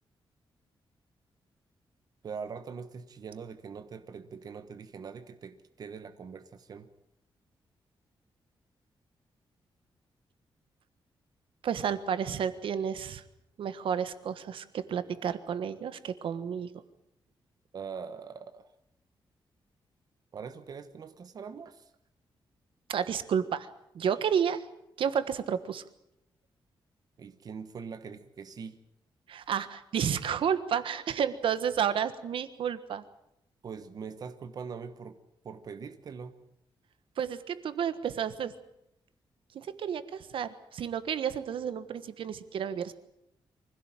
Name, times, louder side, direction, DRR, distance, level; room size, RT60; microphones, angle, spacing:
voice 1, 2.2-6.9 17.7-18.7 20.3-21.9 27.2-28.8 33.6-35.2 35.4-36.4, right 6 dB, 45° right, 9 dB, 1.1 m, -42 dB
voice 2, 11.6-13.2 13.6-16.7 22.9-23.7 23.9-24.6 25.0-25.8 29.3-33.0 37.2-38.5 39.5-42.9, right 8 dB, 75° right, 12 dB, 1.4 m, -31 dB
24.5 x 16.5 x 9.0 m, 0.81 s
wide cardioid pair, 180°, 9 cm